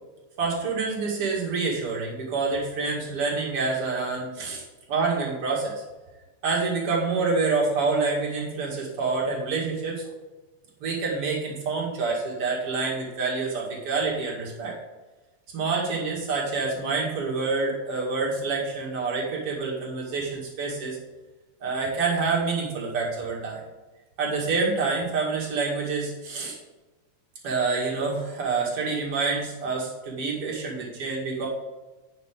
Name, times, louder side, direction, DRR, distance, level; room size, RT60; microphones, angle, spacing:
voice 1, 0.4-5.8 6.4-10.1 10.8-14.7 15.5-21.0 21.6-23.6 24.2-26.6 27.4-31.5, right 4 dB, 50° right, -3 dB, 3.1 m, -27 dB
9.2 x 5.9 x 5.1 m, 1.2 s
omnidirectional pair, 3.4 m